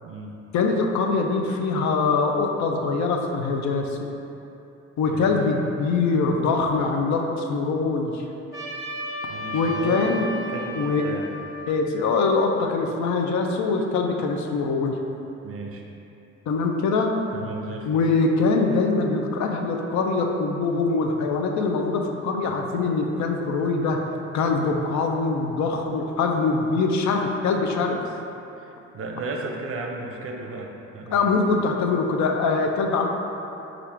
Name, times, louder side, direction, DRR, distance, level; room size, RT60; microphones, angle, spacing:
voice 1, 0.0-0.3 5.1-5.4 9.3-10.2 10.5-11.4 15.4-16.0 17.3-18.0 28.6-31.3, right 3 dB, 50° right, 1 dB, 0.5 m, -34 dB
voice 2, 0.5-4.1 5.0-8.2 9.5-10.3 10.8-11.1 11.7-15.0 16.5-17.1 17.9-24.0 24.3-28.0 31.1-33.1, left 4 dB, 65° left, 2 dB, 0.5 m, -23 dB
Trumpet, 8.5-13.0, equal, 10° right, 1.0 m, -35 dB
3.5 x 2.5 x 4.4 m, 2.8 s
cardioid pair, 90°, 30 cm